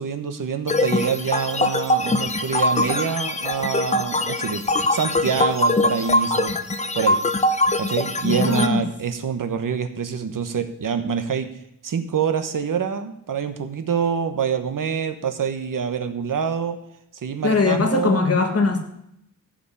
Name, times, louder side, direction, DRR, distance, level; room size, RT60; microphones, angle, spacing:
voice 1, 0.0-4.6 4.9-6.5 6.9-7.2 7.8-11.5 11.8-16.8 17.1-18.3, right 7 dB, 80° right, 8 dB, 1.2 m, -26 dB
sound 1, 0.7-8.7, left 2 dB, 20° left, 0.7 m, -22 dB
voice 2, 8.2-8.8 17.4-18.8, left 4 dB, 50° left, 4 dB, 1.7 m, -20 dB
14.5 x 5.1 x 8.5 m, 0.77 s
wide cardioid pair, 160°, 32 cm